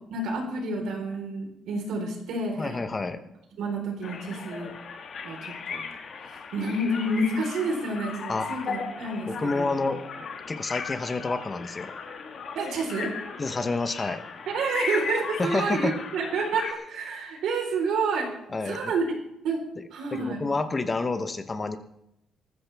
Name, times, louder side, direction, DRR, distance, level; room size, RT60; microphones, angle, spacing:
voice 1, 0.1-2.8 3.6-4.7 5.2-5.4 5.7-5.8 6.3-9.7 12.5-13.1 14.5-18.3 18.6-19.0 19.4-19.6 19.9-20.4, right 3 dB, 75° right, 2 dB, 4.0 m, -29 dB
voice 2, 2.6-3.2 8.3-8.5 9.3-11.9 13.4-14.2 15.4-16.0 18.5-18.9 19.8-19.9 20.1-21.8, left 3 dB, 20° left, 9 dB, 0.8 m, -29 dB
sound 1, 4.0-16.7, left 5 dB, 45° left, 1.6 m, -37 dB
19.5 x 14.0 x 3.5 m, 0.82 s
cardioid pair, 160°, 0 cm